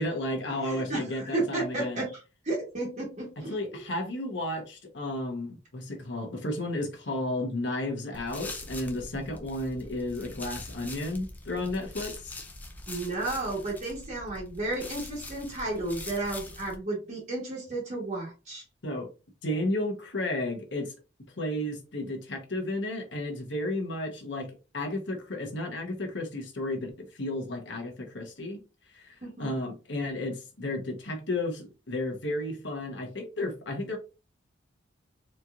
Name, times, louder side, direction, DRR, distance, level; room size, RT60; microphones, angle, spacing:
voice 1, 0.0-2.0 3.5-12.4 18.8-19.1 19.4-21.0 21.4-24.5 24.7-28.6 28.9-34.0, left 1 dB, 65° left, 1.1 m, -33 dB
voice 2, 0.6-3.8 12.9-18.6 29.2-29.5, right 2 dB, 40° right, 1.2 m, -33 dB
sound 1, 8.1-16.8, left 2 dB, 10° left, 0.4 m, -43 dB
4.2 x 3.0 x 2.4 m
head